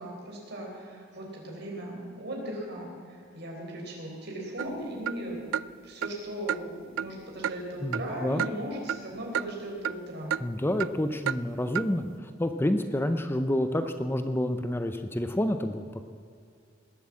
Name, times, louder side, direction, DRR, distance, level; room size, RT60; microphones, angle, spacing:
voice 1, 0.0-5.6 5.8-10.4, right 1 dB, 60° right, -1 dB, 4.3 m, -38 dB
sound 1, 4.6-4.7 5.1-5.2 5.5-5.7 6.0-6.1 6.5-6.6 7.0-7.1 7.4-7.6 7.9-8.1 8.4-8.6 8.9-9.0 9.3-9.5 9.8-10.0 10.3-10.4 10.8-10.9 11.3-11.4 11.7-11.9, right 9 dB, 85° right, 0.3 m, -30 dB
voice 2, 7.8-8.4 10.4-16.0, left 1 dB, 10° left, 8 dB, 0.6 m, -29 dB
19.5 x 8.1 x 7.6 m, 2.4 s
head